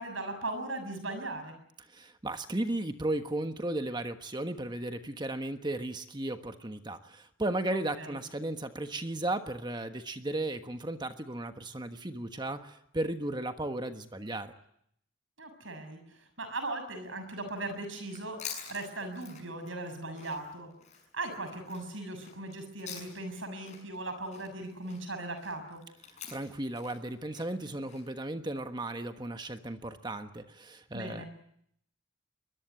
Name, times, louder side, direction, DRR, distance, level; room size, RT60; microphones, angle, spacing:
voice 1, 0.0-1.5 7.7-8.2 15.4-18.4 18.7-20.7 21.1-25.8 30.9-31.3, right 2 dB, 85° right, 8 dB, 6.8 m, -38 dB
voice 2, 1.9-14.5 26.3-31.2, right 1 dB, 20° right, 7 dB, 1.3 m, -35 dB
Chewing mastication, 18.0-23.4 23.6-28.0, left 7 dB, 35° left, 6.7 m, -47 dB
23.0 x 21.0 x 9.4 m, 0.72 s
head